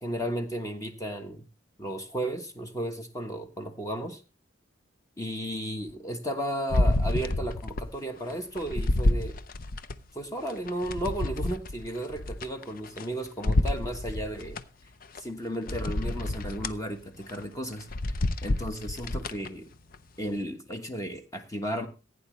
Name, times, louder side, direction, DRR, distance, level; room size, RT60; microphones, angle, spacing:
voice 1, 0.0-1.5 1.8-4.2 5.2-9.3 10.1-14.6 15.2-17.9 18.4-19.7 20.2-21.9, right 1 dB, 20° left, 5 dB, 1.2 m, -34 dB
sound 1, 6.7-7.9 8.3-10.0 10.5-13.1 13.4-14.6 15.2-15.3 15.7-16.8 17.2-17.4 17.8-19.5 19.9-20.0, left 1 dB, 50° left, 0.6 m, -28 dB
16.0 x 9.2 x 3.2 m, 0.30 s
head